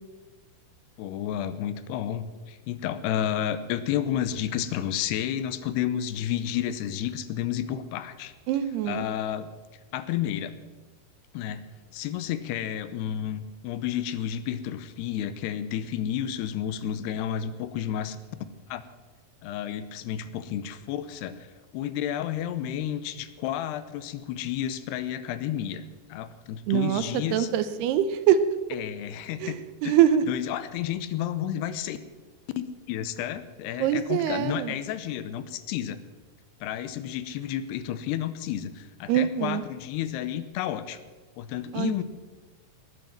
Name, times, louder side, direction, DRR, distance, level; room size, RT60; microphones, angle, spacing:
voice 1, 1.0-8.3 8.8-9.5 9.9-10.6 11.3-11.6 11.9-18.2 18.7-18.8 19.4-21.5 21.7-25.8 26.1-27.5 28.7-30.0 30.3-32.0 32.6-36.0 36.6-41.0 41.4-42.0, left 10 dB, 80° left, 13 dB, 2.9 m, -31 dB
voice 2, 8.5-9.1 26.7-27.0 27.3-28.4 29.4-29.6 29.8-30.2 33.8-34.7 39.1-39.6 41.7-42.0, right 10 dB, 80° right, 12 dB, 2.8 m, -23 dB
19.5 x 9.0 x 7.3 m, 1.3 s
omnidirectional pair, 4.7 m